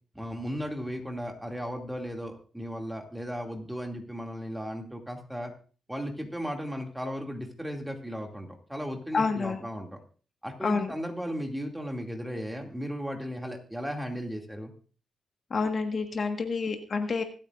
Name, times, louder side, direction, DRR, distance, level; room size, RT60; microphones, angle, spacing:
voice 1, 0.1-5.5 5.9-10.0 10.4-14.7, equal, 5° right, 2 dB, 2.4 m, -36 dB
voice 2, 9.1-9.7 10.6-10.9 15.5-17.2, left 4 dB, 50° left, 5 dB, 1.5 m, -28 dB
25.0 x 8.8 x 2.5 m, 0.38 s
cardioid pair, 100°, 0 cm